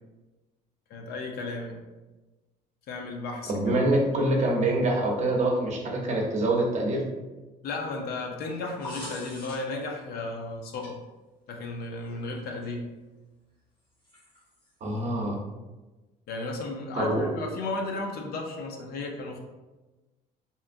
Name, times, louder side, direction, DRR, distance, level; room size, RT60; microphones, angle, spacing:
voice 1, 0.9-1.8 2.9-3.5 4.1-4.3 7.6-10.9 11.5-12.9 16.3-19.4, left 3 dB, 65° left, 1 dB, 0.5 m, -34 dB
voice 2, 3.5-7.1 14.8-15.4 16.9-17.2, right 1 dB, 45° right, -1 dB, 0.7 m, -25 dB
sound 1, 8.5-9.8 10.8-10.9 12.1-12.2 14.0-14.7, left 1 dB, 30° left, 1.1 m, -43 dB
2.8 x 2.3 x 2.5 m, 1.1 s
cardioid pair, 110°, 17 cm